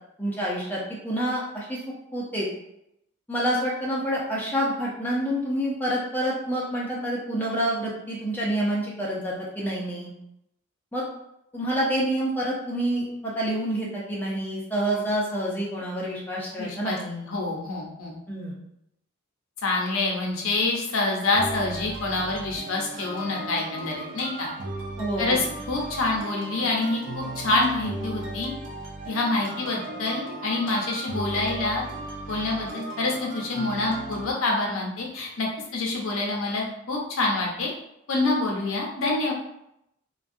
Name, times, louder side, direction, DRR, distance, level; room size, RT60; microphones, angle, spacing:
voice 1, 0.2-1.8 2.1-2.5 3.3-10.1 10.9-11.1 11.5-17.3 18.3-18.5 25.0-25.4, right 1 dB, 10° left, -6 dB, 0.6 m, -28 dB
voice 2, 16.6-17.0 17.3-18.2 19.6-24.5 25.2-28.5 29.1-31.8 32.3-37.7 38.1-39.3, left 2 dB, 85° left, -1 dB, 0.6 m, -27 dB
sound 1, 21.3-34.3, right 2 dB, 60° right, 0.5 m, -36 dB
2.5 x 2.3 x 2.5 m, 0.80 s
head